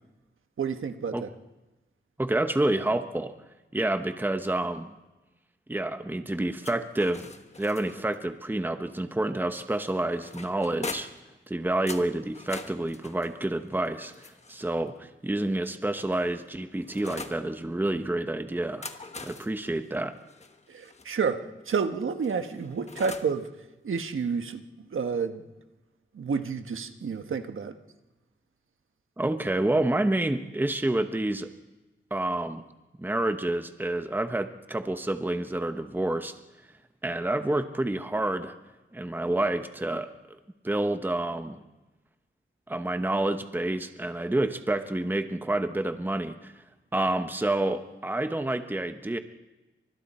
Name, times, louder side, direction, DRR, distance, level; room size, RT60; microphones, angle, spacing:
voice 1, 0.6-1.3 20.7-23.5 23.8-25.4 26.1-27.8, right 5 dB, 80° right, 7 dB, 1.4 m, -30 dB
voice 2, 2.2-3.3 3.7-4.9 5.7-7.3 7.6-11.1 11.5-14.1 14.5-18.9 19.2-20.1 29.2-31.5 32.1-32.6 33.0-36.3 37.0-38.6 38.9-40.4 40.6-41.6 42.7-46.5 46.9-49.2, right 1 dB, 10° right, 8 dB, 0.9 m, -28 dB
sound 1, 6.6-8.2 9.5-11.3 11.9-14.8 15.6-17.4 18.6-21.1 22.2-23.4, left 3 dB, 35° left, 1.3 m, -43 dB
30.0 x 26.0 x 4.4 m, 1.1 s
wide cardioid pair, 165°, 20 cm